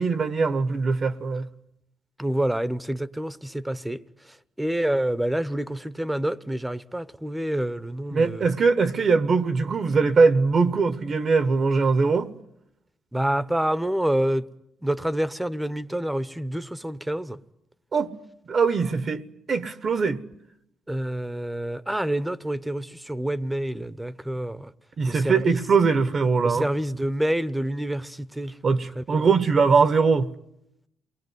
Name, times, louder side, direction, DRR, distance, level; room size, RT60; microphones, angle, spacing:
voice 1, 0.0-1.5 8.1-12.3 17.9-18.1 18.5-19.2 19.5-20.2 25.0-26.6 28.6-30.3, right 4 dB, 45° right, 1.2 m, -21 dB
voice 2, 2.2-4.0 4.6-8.5 13.1-14.4 14.8-17.4 20.9-24.7 25.1-25.6 26.4-28.5 29.0-29.2, right 1 dB, 5° right, 1.0 m, -27 dB
28.0 x 20.5 x 9.6 m
cardioid pair, 90°, 0 cm